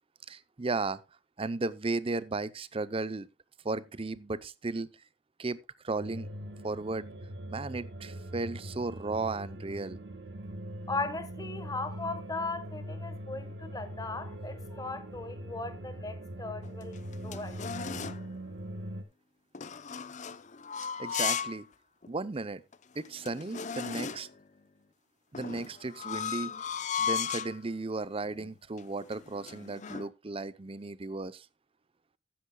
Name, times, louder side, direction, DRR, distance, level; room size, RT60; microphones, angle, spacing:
voice 1, 0.3-1.0 1.4-3.3 3.6-4.9 5.4-6.3 6.6-7.1 7.5-10.0 21.0-21.7 22.1-22.6 23.0-24.3 25.3-26.5 27.0-31.5, right 3 dB, 30° right, 0.6 m, -35 dB
sound 1, 6.0-19.0, right 1 dB, 60° right, 1.5 m, -42 dB
voice 2, 10.9-17.8, left 3 dB, 20° left, 1.2 m, -38 dB
sound 2, 16.6-18.3 19.5-21.6 22.0-22.1 22.7-22.8 23.0-24.4 25.3-27.6 28.2-28.5 28.8-30.1, left 7 dB, 40° left, 0.6 m, -36 dB
14.5 x 10.5 x 2.2 m
head